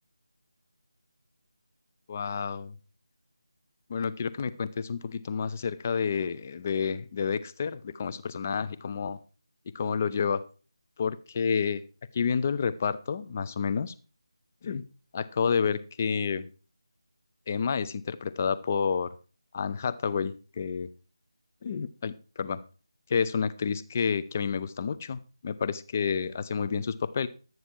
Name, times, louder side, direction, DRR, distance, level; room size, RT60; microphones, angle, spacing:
voice 1, 2.1-2.7 3.9-9.2 9.7-10.4 11.0-11.8 12.1-13.9 14.6-14.8 15.1-16.5 17.5-19.1 19.5-20.9 21.6-22.6 23.1-27.3, left 6 dB, 25° left, 0.6 m, -29 dB
12.0 x 9.4 x 4.4 m
figure-of-eight pair, 160°, 3 cm